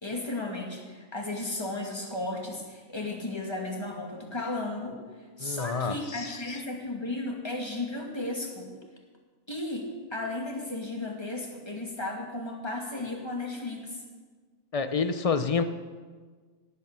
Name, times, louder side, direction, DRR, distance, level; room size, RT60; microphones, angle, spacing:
voice 1, 0.0-5.0 5.4-8.8 9.5-14.0, left 2 dB, 20° left, 0 dB, 2.4 m, -34 dB
voice 2, 5.4-6.6 14.7-15.6, left 5 dB, 40° left, 10 dB, 0.5 m, -29 dB
17.5 x 9.0 x 6.8 m, 1.5 s
omnidirectional pair, 1.5 m